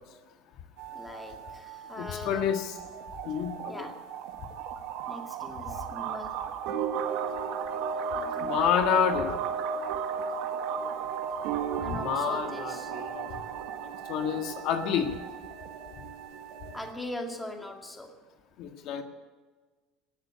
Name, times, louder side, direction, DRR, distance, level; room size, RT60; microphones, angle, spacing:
sound 1, 0.8-16.9, right 7 dB, 70° right, 1.8 m, -35 dB
voice 1, 0.9-2.5 3.7-4.1 5.1-6.6 8.1-8.6 11.8-13.0 16.7-18.2, left 1 dB, 10° left, 2.1 m, -41 dB
voice 2, 2.0-2.8 3.2-3.9 8.4-9.3 11.9-13.3 14.1-15.1 18.6-19.0, left 8 dB, 60° left, 1.7 m, -29 dB
19.0 x 7.5 x 9.8 m
supercardioid pair, 110°, 0 cm